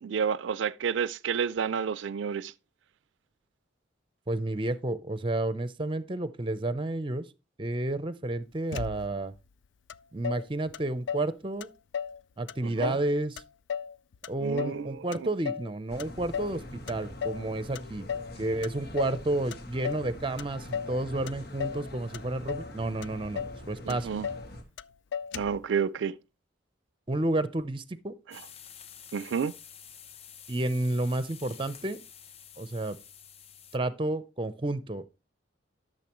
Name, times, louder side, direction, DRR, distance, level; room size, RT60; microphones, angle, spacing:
voice 1, 0.0-2.5 12.6-13.0 14.4-15.3 23.8-24.3 25.3-26.2 28.3-28.4 29.1-29.5, right 7 dB, 80° right, 0.4 m, -30 dB
voice 2, 4.3-7.3 7.6-9.3 10.1-11.7 12.4-13.4 14.3-18.1 18.4-24.1 27.1-28.1 30.5-32.0 32.6-33.0 33.7-35.1, right 2 dB, 30° right, 0.7 m, -31 dB
Motor vehicle (road), 8.7-9.4 9.9-10.0 10.2-11.3 11.6-12.2 12.5-13.1 13.4-14.8 15.1-15.7 16.0-16.6 16.9-17.5 17.8-18.3 18.6-19.2 19.5-20.1 20.4-21.0 21.3-21.9 22.1-22.7 23.0-23.1 23.4-23.6 23.9-24.5 24.8-24.9 25.1-25.7, left 7 dB, 80° left, 0.4 m, -35 dB
sound 1, 15.9-24.6, left 1 dB, 55° left, 1.8 m, -44 dB
sound 2, 28.3-33.8, left 8 dB, 35° left, 0.6 m, -49 dB
12.0 x 6.6 x 3.0 m
head